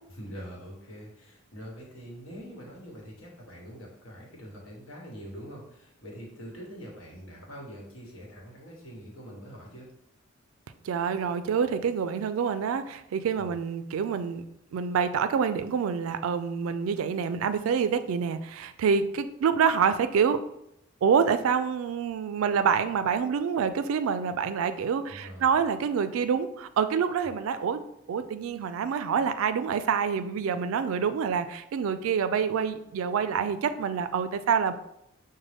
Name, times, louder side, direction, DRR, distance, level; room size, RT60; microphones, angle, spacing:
voice 1, 0.1-9.9 13.4-13.5 25.1-25.6, equal, 70° left, -2 dB, 1.1 m, -44 dB
voice 2, 10.8-14.4 14.7-20.4 21.0-27.8 28.1-34.7, right 6 dB, 75° right, 11 dB, 0.3 m, -27 dB
5.1 x 2.1 x 3.4 m, 0.81 s
head